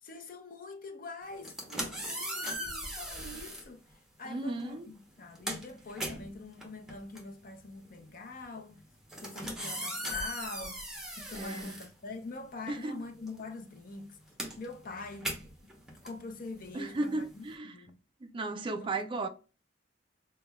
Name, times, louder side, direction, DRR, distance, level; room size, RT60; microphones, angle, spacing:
voice 1, 0.0-3.8 4.2-8.8 9.2-14.2 14.6-15.4 15.6-15.7 16.0-18.0 18.8-19.0, left 3 dB, 50° left, 0.6 m, -44 dB
sound 1, 1.3-3.7 4.6-4.8 5.1-12.6 12.9-17.5, equal, 5° right, 0.9 m, -39 dB
voice 2, 4.2-4.9 11.3-11.7 12.7-13.0 16.7-17.8 18.2-19.3, right 2 dB, 30° right, 0.4 m, -35 dB
5.2 x 2.2 x 2.2 m
head